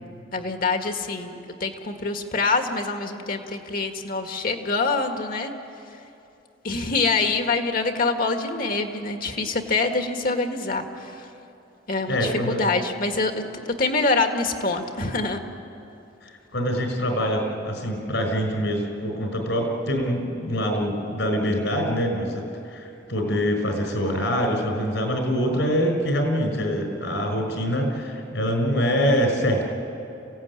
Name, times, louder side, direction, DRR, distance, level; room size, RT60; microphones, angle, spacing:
voice 1, 0.3-5.5 6.6-11.3 11.9-15.4, left 3 dB, 50° left, 5 dB, 1.9 m, -25 dB
voice 2, 12.1-12.6 16.5-22.4 22.7-29.7, equal, 75° left, 4 dB, 5.5 m, -24 dB
28.0 x 16.5 x 9.7 m, 2.8 s
head